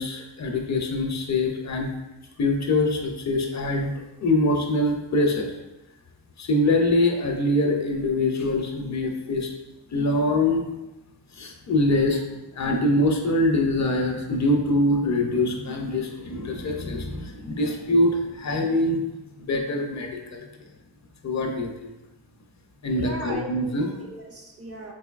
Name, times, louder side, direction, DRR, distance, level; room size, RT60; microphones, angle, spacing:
voice 1, 0.0-1.9 2.4-5.5 6.4-9.5 9.9-10.6 11.3-12.2 12.5-19.0 19.4-20.4 21.2-21.9 22.8-23.9, left 1 dB, 40° left, 2 dB, 0.4 m, -24 dB
voice 2, 23.0-24.9, right 1 dB, 35° right, 1 dB, 0.4 m, -37 dB
3.9 x 2.7 x 2.3 m, 0.98 s
wide cardioid pair, 105°, 44 cm